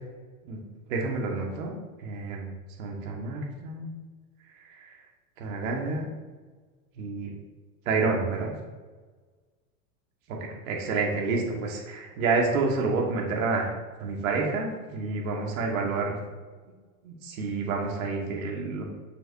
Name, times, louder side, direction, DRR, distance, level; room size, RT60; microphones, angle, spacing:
voice 1, 0.9-1.7 2.0-2.5 2.8-3.9 4.7-5.0 5.4-6.1 7.0-7.3 7.9-8.5 10.3-10.4 10.7-16.2 17.0-18.8, right 4 dB, 65° right, 0 dB, 1.6 m, -29 dB
6.7 x 6.3 x 2.6 m, 1.4 s
supercardioid pair, 155°, 44 cm